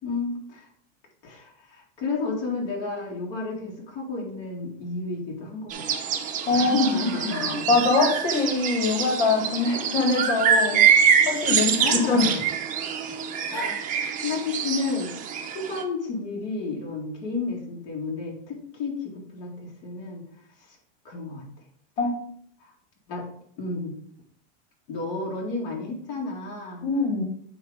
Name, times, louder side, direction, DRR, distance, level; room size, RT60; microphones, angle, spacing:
voice 1, 0.0-0.7 1.2-5.8 6.5-7.8 9.8-10.0 11.8-12.4 13.5-15.2 15.4-20.2 20.7-20.8 21.0-21.5 22.6-22.7 23.1-23.3 23.6-23.9 24.9-26.9, left 3 dB, 55° left, -2 dB, 2.4 m, -31 dB
sound 1, 5.7-15.8, right 7 dB, 25° right, 0.6 m, -25 dB
voice 2, 6.5-7.0 7.3-10.8 11.3-12.3 13.5-13.7 22.0-22.1 26.8-27.2, left 3 dB, 85° left, 1 dB, 2.0 m, -23 dB
8.6 x 3.0 x 5.0 m, 0.63 s
supercardioid pair, 145°, 33 cm